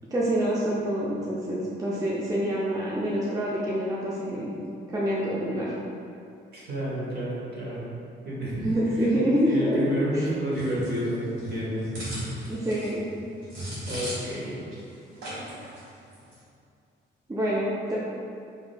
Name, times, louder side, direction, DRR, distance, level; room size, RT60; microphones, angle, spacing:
voice 1, 0.1-4.5 4.9-5.7 8.6-9.8 10.1-10.3 12.5-13.0 17.3-18.0, equal, 15° right, -6 dB, 0.4 m, -26 dB
voice 2, 6.5-7.9 8.2-8.7 9.4-11.9 13.9-14.6, equal, 55° right, -7 dB, 1.1 m, -30 dB
sound 1, 10.5-14.5 14.7-14.8 15.2-15.8 16.1-16.3, equal, 85° right, 1.3 m, -37 dB
3.5 x 2.6 x 2.2 m, 2.4 s
cardioid pair, 90°, 20 cm